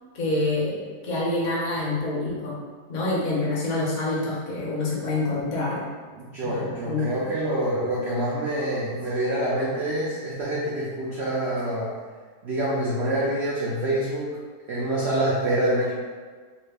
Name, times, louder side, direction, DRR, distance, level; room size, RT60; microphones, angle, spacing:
voice 1, 0.1-2.6 2.9-5.9 6.4-7.1, left 2 dB, 65° left, -6 dB, 0.4 m, -27 dB
voice 2, 6.1-11.9 12.4-14.3 14.7-15.9, right 1 dB, 75° right, -6 dB, 0.6 m, -26 dB
3.1 x 2.4 x 3.2 m, 1.5 s
omnidirectional pair, 1.8 m